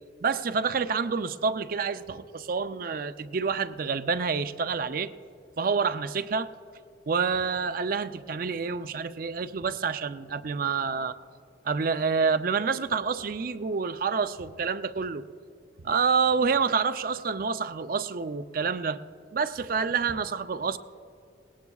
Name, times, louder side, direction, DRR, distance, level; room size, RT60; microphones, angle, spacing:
voice 1, 0.2-5.1 5.6-6.5 7.1-11.2 11.6-15.3 15.8-19.0 19.3-20.8, right 5 dB, 50° right, 12 dB, 0.4 m, -28 dB
20.0 x 18.0 x 2.3 m, 2.5 s
head